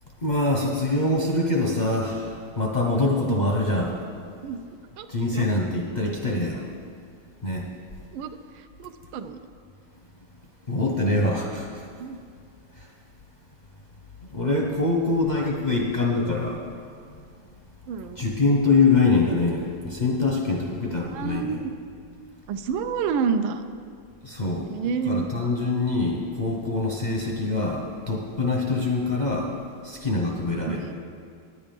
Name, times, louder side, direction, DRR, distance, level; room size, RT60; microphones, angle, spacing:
voice 1, 0.2-3.9 5.1-6.6 7.4-7.7 10.7-11.8 14.3-16.6 18.2-21.6 24.2-24.7 25.0-29.5 29.8-30.9, left 3 dB, 45° left, -1 dB, 0.5 m, -24 dB
voice 2, 8.8-9.4 12.0-12.2 17.9-18.2 21.1-21.7 22.5-23.6 24.7-25.3 30.7-30.9, right 6 dB, 90° right, 9 dB, 1.4 m, -28 dB
9.8 x 9.6 x 5.3 m, 2.2 s
omnidirectional pair, 2.2 m